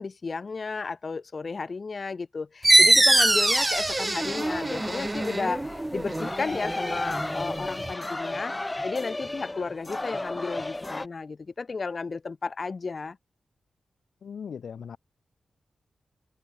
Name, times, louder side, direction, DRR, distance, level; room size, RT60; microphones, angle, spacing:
voice 1, 0.0-8.5 8.8-13.2, left 4 dB, 40° left, 4.3 m, -33 dB
sound 1, 2.6-7.9, right 2 dB, 15° right, 1.5 m, -23 dB
sound 2, 4.3-11.1, left 2 dB, 15° left, 5.4 m, -34 dB
voice 2, 14.2-15.0, left 7 dB, 75° left, 0.8 m, -38 dB
open air
wide cardioid pair, 125°, 0 cm